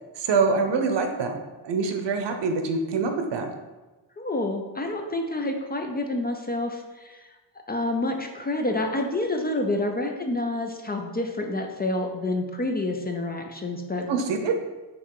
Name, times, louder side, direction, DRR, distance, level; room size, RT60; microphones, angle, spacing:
voice 1, 0.2-1.4 1.6-3.5 14.1-14.5, right 4 dB, 80° right, 6 dB, 0.9 m, -25 dB
voice 2, 4.2-7.3 7.7-14.1, left 2 dB, 25° left, 3 dB, 0.4 m, -28 dB
5.6 x 3.6 x 4.7 m, 1.2 s
wide cardioid pair, 175°, 42 cm